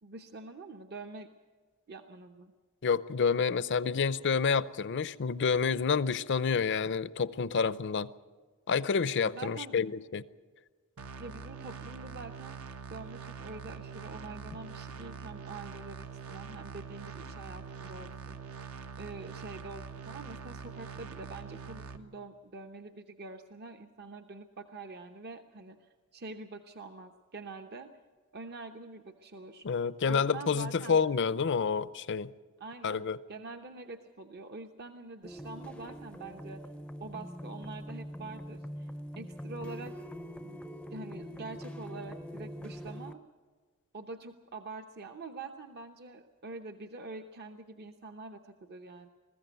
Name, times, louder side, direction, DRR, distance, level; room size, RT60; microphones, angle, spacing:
voice 1, 0.0-1.3 1.9-2.5 9.2-9.8 11.2-12.6 12.9-18.4 19.0-27.9 28.3-29.6 30.1-31.0 32.6-36.6 37.0-38.9 39.2-39.9 40.4-43.2 43.9-49.1, right 3 dB, 50° right, 0.9 m, -45 dB
voice 2, 2.8-8.1 8.7-10.2 29.6-32.3 32.8-33.2, left 5 dB, 55° left, 0.6 m, -29 dB
sound 1, 11.0-22.0, right 6 dB, 75° right, 1.1 m, -44 dB
sound 2, 35.2-43.1, equal, 5° left, 0.6 m, -43 dB
21.0 x 14.5 x 9.2 m
head